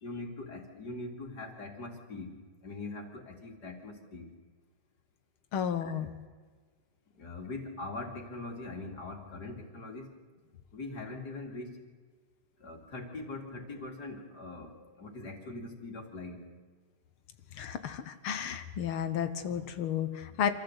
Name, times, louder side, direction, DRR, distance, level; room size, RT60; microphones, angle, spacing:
voice 1, 0.0-4.3 5.8-5.9 7.1-10.2 10.7-11.9 12.6-16.5, left 2 dB, 50° left, 3 dB, 3.3 m, -42 dB
voice 2, 5.5-6.1 17.5-20.5, left 8 dB, 80° left, 10 dB, 2.0 m, -32 dB
26.5 x 14.5 x 8.1 m, 1.5 s
omnidirectional pair, 2.3 m